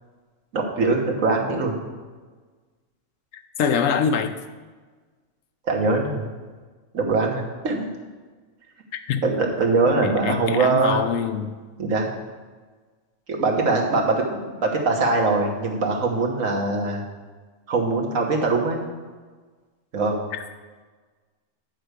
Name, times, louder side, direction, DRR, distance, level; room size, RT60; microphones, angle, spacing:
voice 1, 0.5-1.8 5.7-6.3 6.9-7.9 9.2-11.0 11.8-12.1 13.3-17.0 17.7-18.8 19.9-20.2, right 3 dB, 85° right, 0 dB, 1.7 m, -22 dB
voice 2, 3.6-4.4 8.9-9.2 9.9-11.5 20.3-20.4, left 6 dB, 85° left, 9 dB, 1.0 m, -24 dB
9.5 x 4.7 x 6.6 m, 1.4 s
omnidirectional pair, 1.3 m